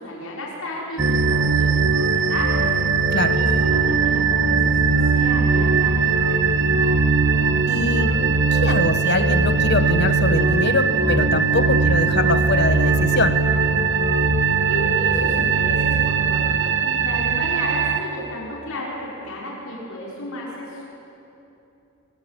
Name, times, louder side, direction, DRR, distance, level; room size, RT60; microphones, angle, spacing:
voice 1, 0.0-2.7 3.3-6.9 14.7-20.8, left 1 dB, 80° left, -5 dB, 5.8 m, -33 dB
sound 1, 1.0-18.0, right 4 dB, 50° right, 1.5 m, -19 dB
voice 2, 3.1-3.4 7.7-8.2 8.5-13.4, left 3 dB, 50° left, 10 dB, 1.2 m, -24 dB
25.0 x 25.0 x 9.3 m, 3.0 s
head